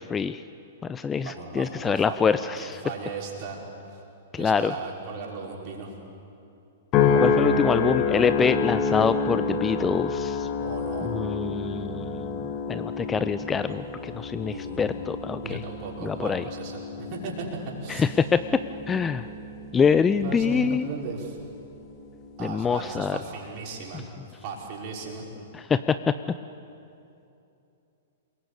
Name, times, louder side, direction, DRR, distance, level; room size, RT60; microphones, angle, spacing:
voice 1, 0.1-0.4 0.9-2.8 4.3-4.7 7.2-10.5 11.0-12.4 12.7-15.6 16.0-16.4 17.9-18.4 18.9-19.2 19.7-20.8 22.4-23.2 25.5-26.1, left 6 dB, 15° left, 12 dB, 0.6 m, -25 dB
voice 2, 1.2-3.6 3.9-4.0 4.4-5.9 10.6-11.2 14.4-14.8 15.4-17.5 17.8-18.1 20.2-21.4 22.4-24.0 24.4-25.2, right 4 dB, 40° right, -2 dB, 5.7 m, -37 dB
sound 1, 6.9-21.4 21.9-22.4, left 5 dB, 30° left, 2.3 m, -28 dB
28.0 x 21.5 x 8.5 m, 2.7 s
figure-of-eight pair, 105°, 0 cm